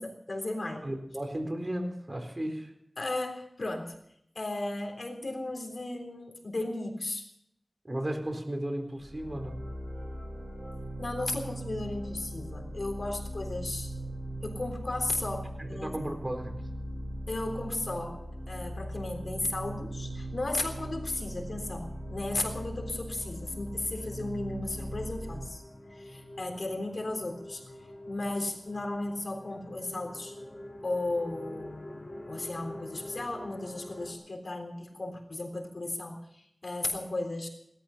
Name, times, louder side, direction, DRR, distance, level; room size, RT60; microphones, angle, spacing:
voice 1, 0.0-0.9 3.0-4.0 4.4-7.2 11.0-13.9 14.4-15.9 17.3-25.6 25.9-27.6 28.1-30.4 30.8-37.5, left 2 dB, 70° left, 3 dB, 3.6 m, -35 dB
voice 2, 0.8-2.7 7.8-9.6 15.6-16.5, right 1 dB, 35° right, 4 dB, 4.3 m, -34 dB
sound 1, 9.0-25.5, right 1 dB, 50° right, 4.8 m, -39 dB
sound 2, 19.1-34.1, left 1 dB, 50° left, 4.1 m, -47 dB
18.5 x 13.0 x 5.8 m, 0.75 s
wide cardioid pair, 40°, 0 cm